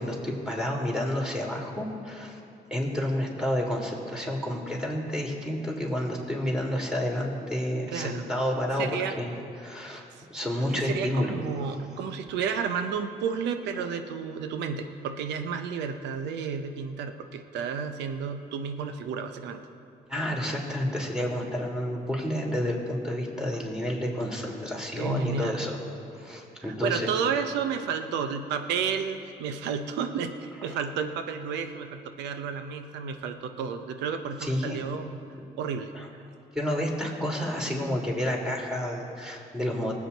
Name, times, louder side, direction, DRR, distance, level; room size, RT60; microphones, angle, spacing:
voice 1, 0.0-2.4 2.7-8.9 9.2-9.3 9.6-10.0 10.3-11.4 20.1-25.8 26.1-27.1 30.7-30.8 34.4-34.8 35.9-36.1 36.5-39.9, left 1 dB, 5° right, -2 dB, 3.4 m, -30 dB
voice 2, 7.9-8.3 8.8-9.2 9.9-10.0 10.7-19.6 25.0-25.6 26.7-35.1 35.6-35.9, right 6 dB, 90° right, 8 dB, 0.7 m, -31 dB
19.5 x 8.4 x 4.1 m, 2.7 s
supercardioid pair, 60°, 17 cm